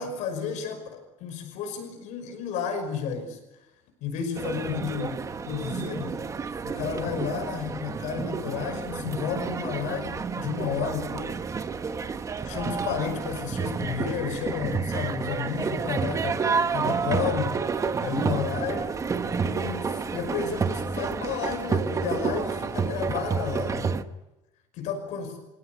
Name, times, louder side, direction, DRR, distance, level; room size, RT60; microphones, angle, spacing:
voice 1, 0.0-3.4 4.0-6.2 6.6-11.4 12.4-17.6 18.0-18.9 19.4-24.0 24.7-25.3, left 7 dB, 75° left, 6 dB, 5.7 m, -32 dB
sound 1, 4.4-24.0, right 5 dB, 25° right, 1.3 m, -30 dB
28.5 x 17.5 x 9.6 m, 1.0 s
cardioid pair, 130°, 12 cm